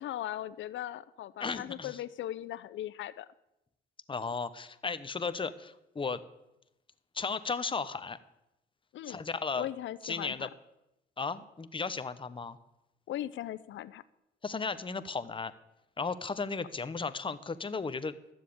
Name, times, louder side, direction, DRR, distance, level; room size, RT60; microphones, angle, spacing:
voice 1, 0.0-3.3 8.9-9.2 9.6-10.5 13.1-14.0, left 13 dB, 75° left, 16 dB, 0.7 m, -38 dB
voice 2, 1.4-2.0 4.1-6.2 7.1-8.2 9.1-9.7 10.0-10.5 11.2-12.6 14.4-15.5 16.0-18.2, left 4 dB, 25° left, 13 dB, 0.9 m, -35 dB
12.5 x 7.5 x 8.6 m, 0.89 s
cardioid pair, 90°, 20 cm